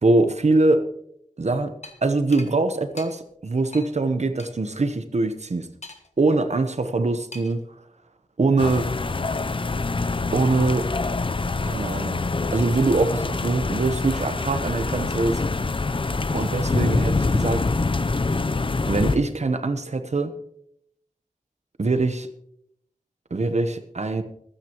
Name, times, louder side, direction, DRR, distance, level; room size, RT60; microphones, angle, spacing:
voice 1, 0.0-0.8 1.4-1.8 2.0-5.7 6.2-7.6 8.4-8.9 10.3-10.9 11.6-12.2 12.5-15.4 16.3-17.7 18.9-20.3 21.8-22.3 23.3-24.2, right 3 dB, 55° right, 8 dB, 1.0 m, -23 dB
sound 1, 1.8-2.0 2.3-2.5 3.0-3.1 3.7-3.9 4.4-4.5 5.8-6.2 7.3-7.6, left 2 dB, 55° left, 1.5 m, -41 dB
sound 2, 8.6-19.2, left 3 dB, 40° left, 0.6 m, -25 dB
25.0 x 9.5 x 3.0 m, 0.72 s
wide cardioid pair, 70°, 14 cm